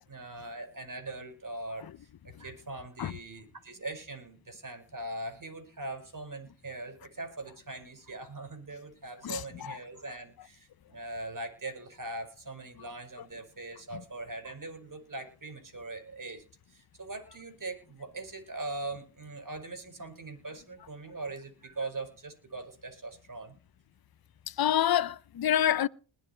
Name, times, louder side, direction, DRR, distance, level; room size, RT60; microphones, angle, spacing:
voice 1, 0.0-23.5, right 2 dB, 40° right, 5.0 m, -41 dB
voice 2, 9.2-9.8 24.5-25.9, left 10 dB, 45° left, 0.7 m, -27 dB
20.5 x 7.3 x 4.5 m
cardioid pair, 50°, 49 cm